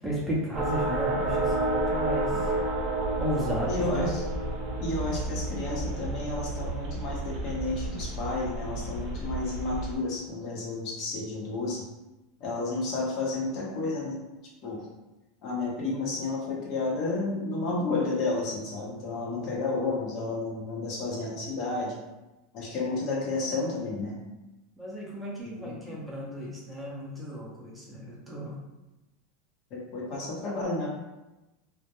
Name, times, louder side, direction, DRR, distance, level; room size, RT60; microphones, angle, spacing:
voice 1, 0.0-2.3 3.2-4.1 24.8-28.5, equal, 5° right, -6 dB, 0.6 m, -34 dB
sound 1, 0.5-10.0, right 2 dB, 55° right, 0.5 m, -30 dB
voice 2, 3.7-4.3 4.8-11.8 12.4-14.2 14.6-14.9 15.4-21.9 22.5-24.2 25.4-25.7 29.7-30.9, left 3 dB, 50° left, -4 dB, 0.7 m, -31 dB
2.1 x 2.1 x 2.9 m, 1.0 s
supercardioid pair, 130°, 0 cm